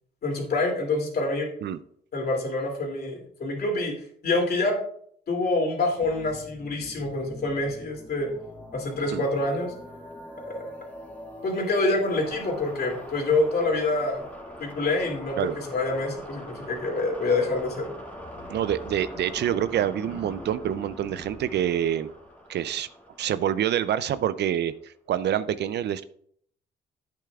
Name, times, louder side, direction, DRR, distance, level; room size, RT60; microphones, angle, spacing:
voice 1, 0.2-1.5 2.1-3.9 4.2-4.8 5.3-8.3 8.7-9.7 10.4-10.7 11.4-14.2 14.6-17.9, left 2 dB, 50° left, 0 dB, 2.6 m, -26 dB
sound 1, 6.0-24.5, equal, 10° left, 2.0 m, -43 dB
voice 2, 18.5-22.1 22.5-22.9 23.2-26.0, right 10 dB, 60° right, 15 dB, 0.4 m, -26 dB
10.5 x 8.5 x 2.4 m, 0.64 s
cardioid pair, 90°, 20 cm